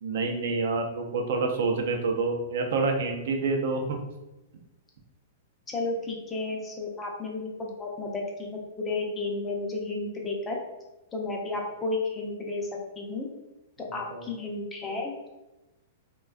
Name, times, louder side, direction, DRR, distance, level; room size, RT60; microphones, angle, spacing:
voice 1, 0.0-4.0 14.1-14.3, right 3 dB, 70° right, 3 dB, 0.4 m, -27 dB
voice 2, 5.7-10.6 11.1-12.7 13.0-13.3 13.9-15.3, left 3 dB, 20° left, -1 dB, 0.5 m, -32 dB
2.4 x 2.2 x 2.3 m, 1.0 s
hypercardioid pair, 130°, 0 cm